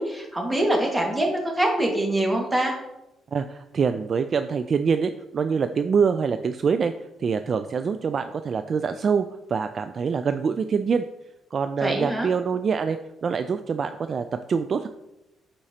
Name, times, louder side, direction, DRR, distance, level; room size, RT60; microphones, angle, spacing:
voice 1, 0.0-2.8 11.8-12.3, right 1 dB, 15° right, 0 dB, 1.7 m, -24 dB
voice 2, 3.3-6.9 7.2-11.0 11.5-14.9, right 6 dB, 45° right, 9 dB, 0.3 m, -25 dB
9.6 x 4.4 x 2.8 m, 0.92 s
cardioid pair, 90°, 0 cm